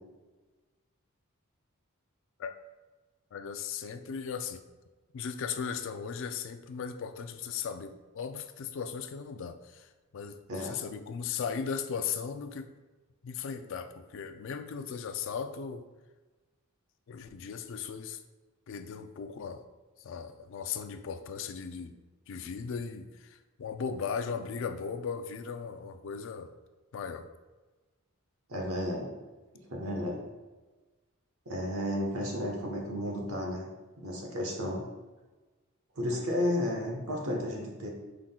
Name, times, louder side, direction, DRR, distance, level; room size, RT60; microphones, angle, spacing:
voice 1, 3.3-4.6 5.1-12.7 13.2-15.9 17.1-18.2 18.7-19.6 20.0-21.9 22.3-26.5 26.9-27.3, left 6 dB, 60° left, 8 dB, 0.3 m, -37 dB
voice 2, 10.5-10.8 28.5-29.1 29.7-30.2 31.5-33.6 34.0-34.8 36.0-37.9, left 1 dB, 75° right, 0 dB, 1.1 m, -32 dB
5.7 x 3.7 x 2.3 m, 1.2 s
head